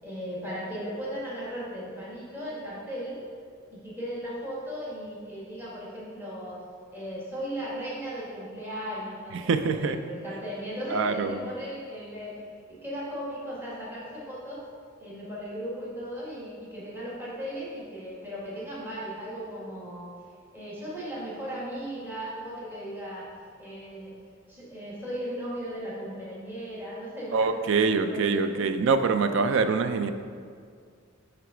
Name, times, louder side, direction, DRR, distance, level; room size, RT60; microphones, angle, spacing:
voice 1, 0.0-3.2 3.7-6.6 6.9-12.4 12.7-14.6 15.0-20.1 20.5-23.3 23.6-24.1 24.5-27.5 27.8-28.9, equal, 10° right, -7 dB, 1.4 m, -37 dB
voice 2, 9.3-10.0 10.9-11.4 27.3-30.1, right 4 dB, 60° right, 9 dB, 0.4 m, -25 dB
7.9 x 3.4 x 4.9 m, 2.1 s
head